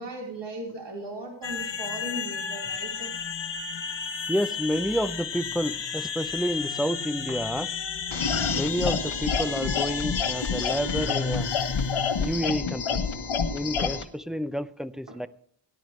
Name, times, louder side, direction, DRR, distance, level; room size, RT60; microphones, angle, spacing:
voice 1, 0.0-3.1 7.3-7.4 11.1-11.2 13.8-13.9 15.1-15.2, right 2 dB, 60° right, 4.4 m, -38 dB
sound 1, 1.4-12.4, left 6 dB, 60° left, 1.3 m, -33 dB
voice 2, 4.3-7.7 8.5-11.5 12.1-13.1 13.5-15.3, equal, ahead, 0.6 m, -29 dB
sound 2, 8.1-14.0, left 5 dB, 80° left, 1.4 m, -28 dB
18.5 x 11.0 x 3.3 m
wide cardioid pair, 95°, 47 cm